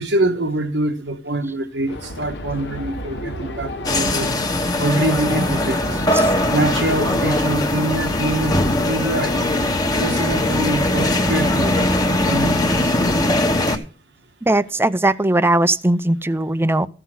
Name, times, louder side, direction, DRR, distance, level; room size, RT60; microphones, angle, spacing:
voice 1, 0.0-4.3 4.8-6.0 6.5-8.6 8.9-9.4 10.0-13.2 13.7-13.8, right 1 dB, 90° right, 1.5 m, -24 dB
sound 1, 1.9-12.5, left 1 dB, 75° left, 1.2 m, -32 dB
sound 2, 3.8-13.8, left 1 dB, 25° left, 1.2 m, -20 dB
voice 2, 14.4-16.9, right 1 dB, 15° right, 0.5 m, -19 dB
14.5 x 5.6 x 5.9 m
head